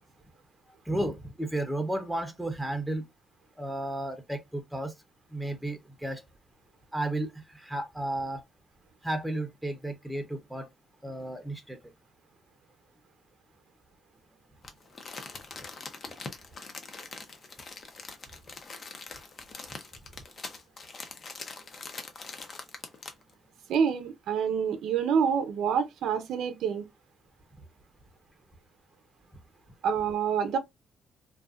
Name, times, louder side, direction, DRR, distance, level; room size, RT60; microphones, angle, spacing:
voice 1, 0.9-3.1 3.6-4.9 5.3-6.2 6.9-8.4 9.0-10.7 11.0-11.8, right 1 dB, 5° right, 0.7 m, -33 dB
Crumpling crinkling, 14.6-23.3 23.7-23.8, left 4 dB, 45° left, 0.7 m, -43 dB
voice 2, 23.7-26.9 29.8-30.6, right 7 dB, 75° right, 0.6 m, -27 dB
2.5 x 2.3 x 2.4 m
cardioid pair, 90°, 0 cm